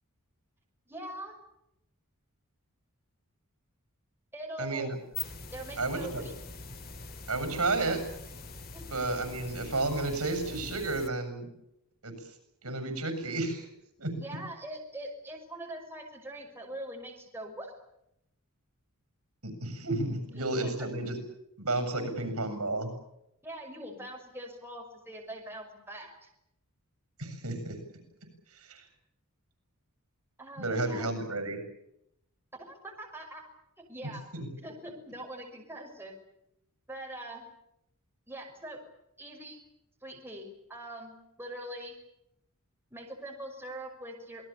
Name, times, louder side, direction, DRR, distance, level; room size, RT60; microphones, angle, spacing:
voice 1, 0.9-1.3 4.3-5.0 5.5-6.3 8.7-8.9 14.2-17.7 20.4-20.9 23.4-26.3 30.4-31.1 32.5-33.5 33.8-34.2 34.6-36.1 36.9-37.4 38.3-38.8 39.2-39.6 40.0-42.0 42.9-44.5, right 1 dB, 10° right, 1 dB, 6.0 m, -43 dB
voice 2, 4.6-5.0 5.8-6.2 7.3-8.0 8.9-11.5 12.0-12.1 12.6-13.7 14.0-14.1 19.4-21.2 21.6-22.9 27.2-27.8 28.5-28.9 30.6-31.6 34.3-34.5, right 2 dB, 80° right, 8 dB, 7.2 m, -32 dB
sound 1, 4.9-11.1, left 4 dB, 45° left, 2.4 m, -43 dB
27.5 x 20.0 x 8.6 m, 0.80 s
head